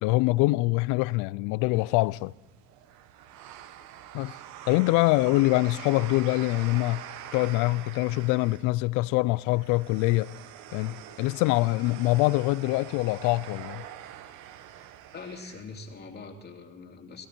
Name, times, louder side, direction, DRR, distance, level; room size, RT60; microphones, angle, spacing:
voice 1, 0.0-2.3 4.1-4.3 4.7-7.0 7.3-10.3 10.7-13.8, left 21 dB, 75° left, 0.5 m, -24 dB
sound 1, 1.7-16.0, right 11 dB, 70° right, 1.1 m, -45 dB
voice 2, 15.1-17.3, left 4 dB, 35° left, 2.7 m, -43 dB
18.5 x 15.5 x 4.4 m
cardioid pair, 115°, 30 cm